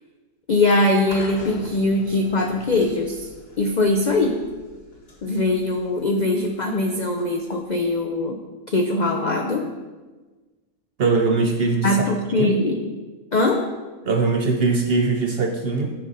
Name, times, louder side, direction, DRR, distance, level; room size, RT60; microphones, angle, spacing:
voice 1, 0.5-3.3 3.6-4.4 5.2-8.4 8.7-9.7 11.8-12.8 13.3-13.6, left 2 dB, 70° left, 3 dB, 0.4 m, -21 dB
sound 1, 1.1-8.1, left 1 dB, 55° left, 1.7 m, -43 dB
voice 2, 11.0-12.1 12.4-12.5 14.1-15.9, right 4 dB, 60° right, 4 dB, 0.6 m, -21 dB
11.0 x 5.3 x 3.8 m, 1.3 s
omnidirectional pair, 1.5 m